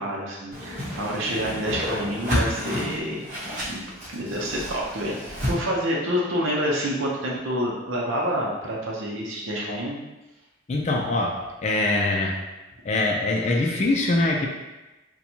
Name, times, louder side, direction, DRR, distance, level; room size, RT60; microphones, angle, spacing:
voice 1, 0.0-3.2 3.7-5.2 5.4-10.0, equal, 85° right, -3 dB, 0.6 m, -28 dB
Whoosh swoosh swish, 0.5-5.5, equal, 40° right, 1.0 m, -30 dB
voice 2, 10.7-12.4 12.8-14.5, left 2 dB, 35° left, -1 dB, 0.4 m, -23 dB
4.3 x 2.2 x 2.7 m, 1.1 s
head